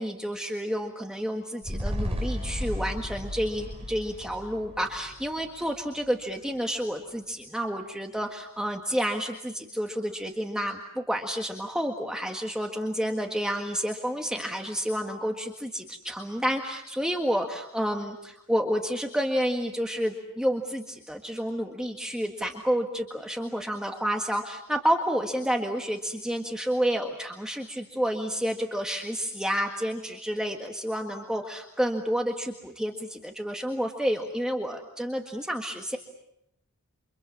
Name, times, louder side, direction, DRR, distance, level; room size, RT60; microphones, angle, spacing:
voice 1, 0.0-36.0, equal, 5° right, 2 dB, 1.7 m, -30 dB
sound 1, 1.6-6.2 6.5-6.6, equal, 30° right, 4.7 m, -34 dB
29.0 x 26.0 x 7.3 m, 0.80 s
head